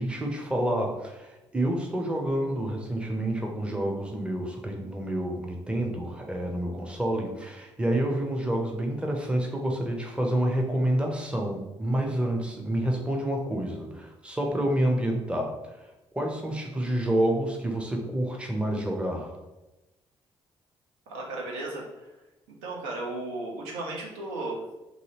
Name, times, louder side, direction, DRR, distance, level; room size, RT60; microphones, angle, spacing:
voice 1, 0.0-15.5 16.1-19.4, right 1 dB, 10° right, 1 dB, 0.6 m, -28 dB
voice 2, 21.1-22.1 22.6-24.7, right 2 dB, 70° right, -2 dB, 0.6 m, -35 dB
2.7 x 2.7 x 2.8 m, 1.0 s
figure-of-eight pair, 40°, 14 cm